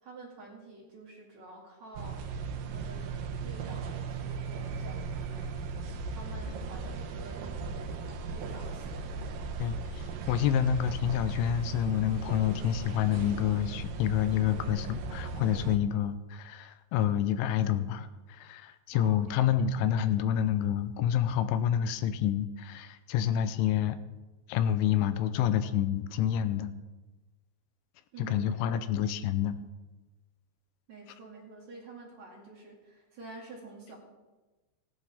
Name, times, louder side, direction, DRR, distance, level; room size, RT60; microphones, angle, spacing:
voice 1, 0.0-2.3 2.6-5.9 6.1-9.2 18.9-19.4 28.1-28.6 30.9-34.0, right 3 dB, 45° right, -4 dB, 3.2 m, -49 dB
sound 1, 2.0-15.8, right 4 dB, 80° right, 2.1 m, -37 dB
voice 2, 9.6-24.0 24.5-26.7 28.2-29.6, left 9 dB, 85° left, 11 dB, 3.1 m, -28 dB
18.5 x 11.0 x 3.6 m, 1.2 s
omnidirectional pair, 5.3 m